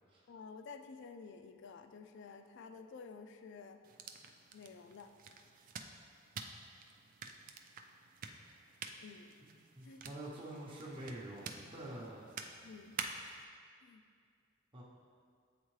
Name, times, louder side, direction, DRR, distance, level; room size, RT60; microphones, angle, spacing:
voice 1, 0.3-3.8 4.5-5.1 9.0-9.3 9.8-10.0 12.6-12.9 13.8-14.0, left 5 dB, 60° left, 8 dB, 0.4 m, -51 dB
sound 1, 3.8-13.4, right 5 dB, 40° right, 0.3 m, -49 dB
voice 2, 9.7-12.3 14.7-14.8, right 1 dB, 25° right, -6 dB, 0.8 m, -46 dB
8.6 x 3.6 x 3.1 m, 2.1 s
head